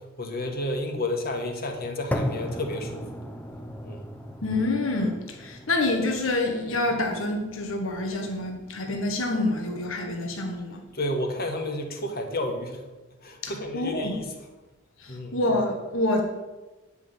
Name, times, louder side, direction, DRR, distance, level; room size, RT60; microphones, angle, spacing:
voice 1, 0.2-3.1 3.8-4.1 10.9-12.8 13.2-14.3 15.1-15.4, left 1 dB, 50° left, 4 dB, 1.7 m, -31 dB
sound 1, 2.1-10.1, equal, 10° left, 0.8 m, -37 dB
voice 2, 4.4-10.8 13.4-14.1 15.0-16.2, left 2 dB, 80° left, 2 dB, 1.5 m, -27 dB
9.9 x 6.0 x 8.1 m, 1.1 s
head